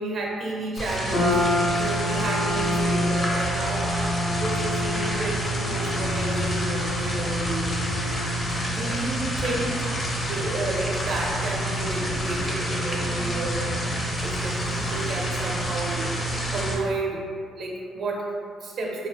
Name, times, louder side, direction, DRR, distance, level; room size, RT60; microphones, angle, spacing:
voice 1, 0.0-3.9 4.3-7.8 8.6-9.9 10.3-16.1 16.5-17.2 17.6-19.1, right 2 dB, 60° right, -1 dB, 0.5 m, -31 dB
sound 1, 0.8-16.7, right 1 dB, 30° left, 0.6 m, -28 dB
sound 2, 1.1-15.5, left 2 dB, 70° left, 1.1 m, -31 dB
2.7 x 2.0 x 3.3 m, 2.2 s
cardioid pair, 90°, 0 cm